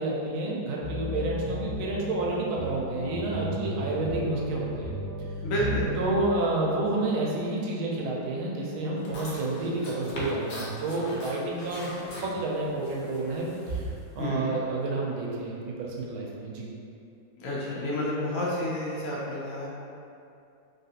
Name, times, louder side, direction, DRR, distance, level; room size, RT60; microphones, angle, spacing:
voice 1, 0.0-4.9 6.0-16.7, right 2 dB, 85° right, -2 dB, 1.4 m, -30 dB
sound 1, 0.8-6.2, equal, 70° right, 1.4 m, -33 dB
voice 2, 5.4-6.0 14.2-14.6 17.4-19.7, left 1 dB, 85° left, -7 dB, 0.7 m, -30 dB
sound 2, 9.0-14.3, right 1 dB, 65° left, 1.1 m, -39 dB
3.3 x 2.4 x 2.7 m, 2.6 s
omnidirectional pair, 2.2 m